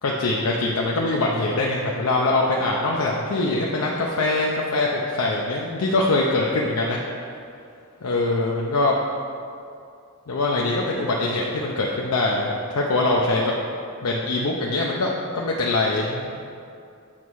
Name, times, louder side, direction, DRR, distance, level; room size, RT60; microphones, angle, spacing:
voice 1, 0.0-7.0 8.0-9.0 10.3-13.5 14.0-16.4, left 2 dB, 85° left, -3 dB, 0.6 m, -23 dB
7.5 x 3.1 x 6.1 m, 2.5 s
head